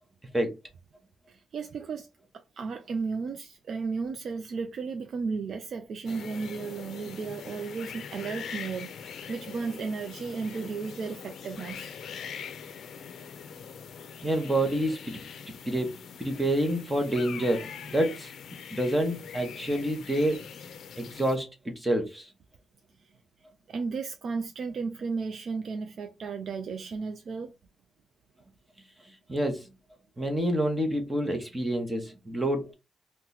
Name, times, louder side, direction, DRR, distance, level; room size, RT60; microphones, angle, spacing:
voice 1, 1.5-2.1 2.6-8.9 9.3-12.0 23.7-27.5, right 4 dB, 50° right, 0.3 m, -34 dB
sound 1, 6.0-21.4, left 7 dB, 70° left, 0.4 m, -43 dB
voice 2, 14.2-15.9 16.2-18.3 18.7-20.4 21.0-22.3 29.3-29.7 30.2-32.7, right 1 dB, 10° right, 0.7 m, -28 dB
2.9 x 2.1 x 3.7 m
wide cardioid pair, 165°, 0 cm